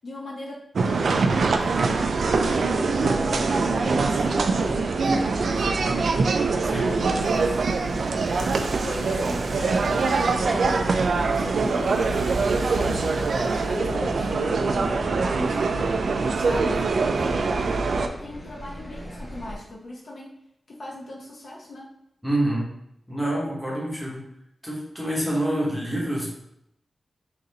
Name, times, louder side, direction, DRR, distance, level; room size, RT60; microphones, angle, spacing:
voice 1, 0.0-1.6 2.4-6.2 6.9-7.6 8.6-11.0 11.3-12.9 13.3-16.0 16.3-20.3 20.7-21.9, left 1 dB, 55° left, -3 dB, 0.7 m, -38 dB
sound 1, 0.8-18.1, right 4 dB, 65° right, 0.3 m, -23 dB
sound 2, 1.1-19.6, equal, 20° left, 1.0 m, -38 dB
sound 3, 7.2-13.8, right 1 dB, 85° right, 0.7 m, -41 dB
voice 2, 22.2-22.7 23.1-24.2 24.6-26.3, right 1 dB, ahead, -5 dB, 1.1 m, -27 dB
3.9 x 2.5 x 4.0 m, 0.77 s
wide cardioid pair, 180°, 0 cm